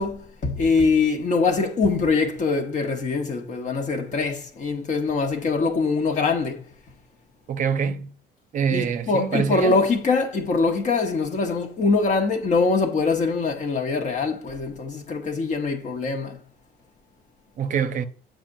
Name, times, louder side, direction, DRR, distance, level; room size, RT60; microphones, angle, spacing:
voice 1, 0.0-6.6 8.7-16.4, left 4 dB, 45° left, 1.1 m, -23 dB
voice 2, 7.5-8.1 8.5-9.8 17.6-18.0, right 7 dB, 50° right, 0.6 m, -25 dB
7.3 x 5.0 x 2.6 m
cardioid pair, 110°, 17 cm